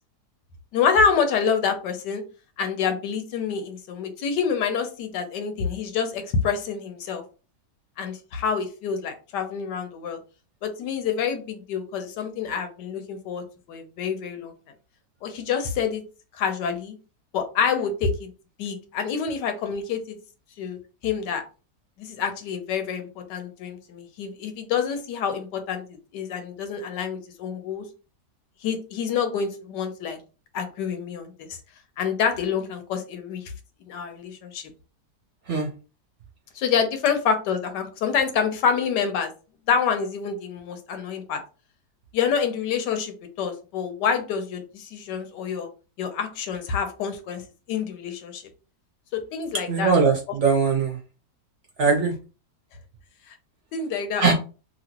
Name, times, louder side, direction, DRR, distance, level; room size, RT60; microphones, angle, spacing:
voice 1, 0.7-2.2 2.6-7.2 8.0-10.2 10.6-14.5 15.2-16.0 16.3-16.9 17.3-18.3 18.6-20.2 20.6-21.4 22.0-27.8 28.6-30.2 30.5-31.6 32.0-33.5 33.9-34.7 36.5-39.3 39.7-41.4 42.1-45.7 46.0-47.4 47.7-48.4 49.1-49.9 53.3-53.4 53.7-54.3, left 6 dB, 80° left, 7 dB, 1.3 m, -27 dB
voice 2, 49.7-51.0 51.8-52.1 54.2-54.3, right 5 dB, 60° right, 0 dB, 0.8 m, -20 dB
2.9 x 2.7 x 2.8 m, 0.34 s
omnidirectional pair, 1.8 m